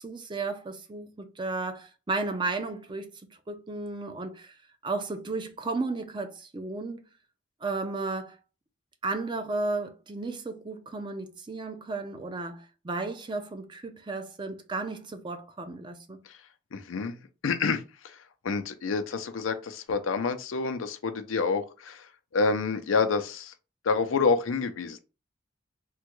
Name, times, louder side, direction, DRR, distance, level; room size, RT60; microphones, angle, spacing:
voice 1, 0.0-3.1 3.5-4.5 4.8-7.0 7.6-8.4 9.0-16.2, right 3 dB, 25° right, 0.4 m, -34 dB
voice 2, 16.7-18.2 18.4-23.5 23.8-25.0, left 4 dB, 85° left, 0.5 m, -28 dB
3.5 x 2.2 x 3.0 m
head